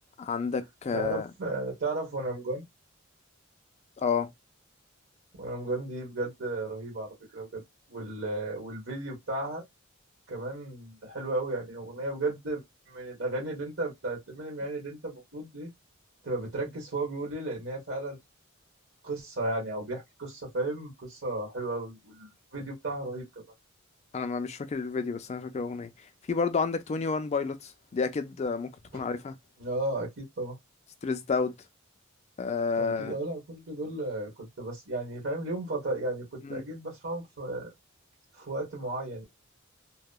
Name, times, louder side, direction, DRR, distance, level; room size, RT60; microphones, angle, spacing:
voice 1, 0.2-1.3 4.0-4.3 24.1-25.9 26.3-29.4 31.0-31.5 32.4-33.2 36.4-36.6, left 5 dB, 35° left, 0.3 m, -30 dB
voice 2, 0.9-2.6 5.4-7.6 7.9-9.6 10.3-12.6 12.9-15.7 16.2-18.2 19.0-23.4 28.9-29.0 29.6-30.6 32.8-37.7 38.3-39.3, right 2 dB, 60° right, 1.2 m, -34 dB
2.8 x 2.1 x 2.2 m
head